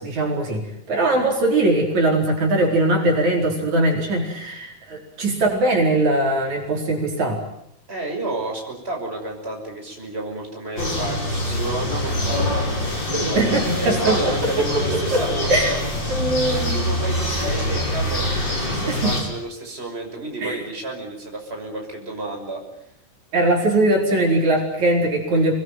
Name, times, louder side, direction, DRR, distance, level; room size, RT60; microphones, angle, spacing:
voice 1, 0.0-7.4 13.4-14.2 15.1-15.2 15.5-15.7 16.1-16.9 18.9-19.1 20.4-20.6 23.3-25.6, right 2 dB, 65° right, 1 dB, 5.9 m, -20 dB
voice 2, 7.9-12.7 13.1-13.4 13.8-15.8 16.5-22.6, right 2 dB, 20° right, 2 dB, 6.1 m, -31 dB
sound 1, 10.8-19.2, left 1 dB, 35° left, 7.7 m, -24 dB
27.5 x 21.0 x 9.4 m, 0.75 s
omnidirectional pair, 3.5 m